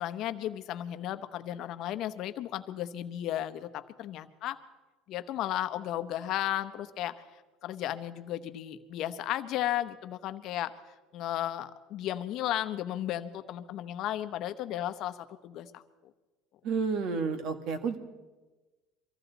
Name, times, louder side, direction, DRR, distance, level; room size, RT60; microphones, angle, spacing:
voice 1, 0.0-4.6 5.1-7.2 7.6-10.8 11.1-15.2 15.4-15.8, left 12 dB, 55° left, 10 dB, 0.9 m, -34 dB
voice 2, 16.6-18.0, right 5 dB, 55° right, 8 dB, 1.7 m, -30 dB
24.0 x 15.0 x 4.0 m, 1.2 s
cardioid pair, 130°, 0 cm